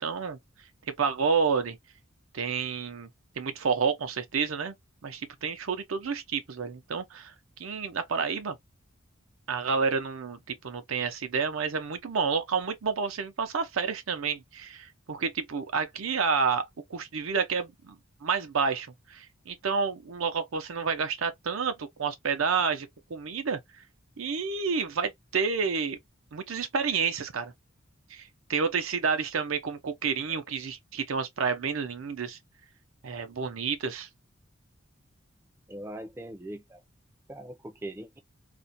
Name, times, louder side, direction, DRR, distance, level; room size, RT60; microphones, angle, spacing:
voice 1, 0.0-0.4 1.0-1.8 2.3-3.1 3.4-4.7 5.0-7.3 7.6-8.6 9.5-16.6 16.9-23.6 24.2-26.0 26.3-27.5 28.1-32.4 33.0-34.1, right 5 dB, 85° right, 0.6 m, -29 dB
voice 2, 35.7-36.8 37.3-38.2, right 1 dB, 10° right, 0.4 m, -41 dB
2.5 x 2.1 x 2.5 m
head